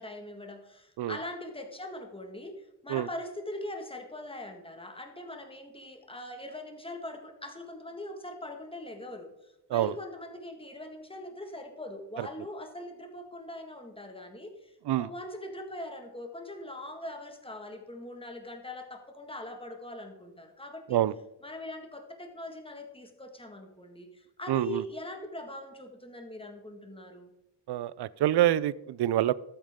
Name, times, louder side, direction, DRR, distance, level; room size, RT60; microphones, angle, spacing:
voice 1, 0.0-21.0 21.4-27.3, left 1 dB, 15° left, 4 dB, 1.7 m, -42 dB
voice 2, 24.5-24.8 27.7-29.3, right 13 dB, 75° right, 20 dB, 0.5 m, -26 dB
12.5 x 8.8 x 3.7 m, 0.88 s
cardioid pair, 90°, 41 cm